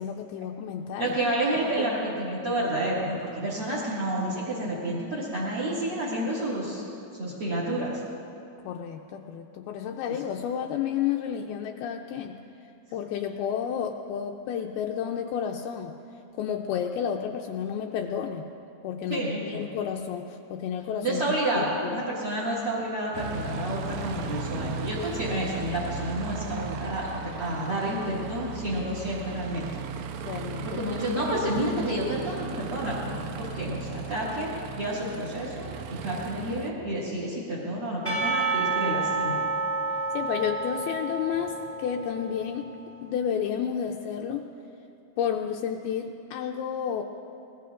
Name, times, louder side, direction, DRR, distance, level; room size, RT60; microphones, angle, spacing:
voice 1, 0.0-1.1 1.8-1.9 8.6-12.4 12.9-15.9 16.4-18.5 18.8-21.2 21.6-22.0 30.2-30.8 40.1-41.5 41.8-42.7 43.0-44.5 45.2-47.0, left 8 dB, 90° left, 2 dB, 2.1 m, -31 dB
voice 2, 1.0-6.8 7.1-8.0 19.1-19.7 21.0-29.7 30.6-35.7 36.0-39.4, right 1 dB, 45° right, -7 dB, 1.6 m, -30 dB
Aircraft, 23.1-36.7, right 5 dB, 80° right, 2.6 m, -36 dB
Percussion / Church bell, 38.0-42.5, right 3 dB, 10° right, 2.2 m, -29 dB
22.5 x 19.5 x 2.5 m, 2.7 s
omnidirectional pair, 5.0 m